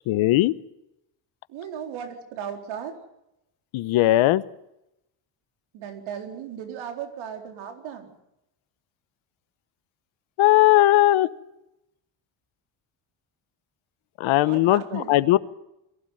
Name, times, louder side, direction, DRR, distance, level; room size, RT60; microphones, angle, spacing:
voice 1, 0.1-0.5 3.7-4.4 10.4-11.3 14.2-15.4, left 16 dB, 85° left, 16 dB, 1.1 m, -18 dB
voice 2, 1.5-3.0 5.7-8.1 14.4-15.3, right 8 dB, 90° right, 4 dB, 4.1 m, -36 dB
22.5 x 16.0 x 9.1 m, 0.87 s
cardioid pair, 140°, 47 cm